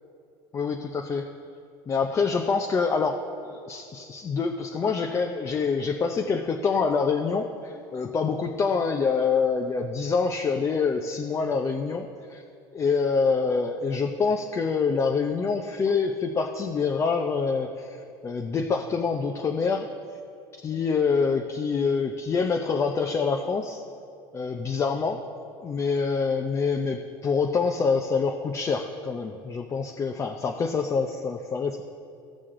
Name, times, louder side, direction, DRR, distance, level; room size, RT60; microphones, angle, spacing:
voice 1, 0.5-1.3 1.9-12.4 12.7-19.9 20.5-23.8 24.3-25.2 25.6-31.8, left 5 dB, 25° left, 3 dB, 0.5 m, -26 dB
16.0 x 6.3 x 3.8 m, 2.5 s
supercardioid pair, 125°, 11 cm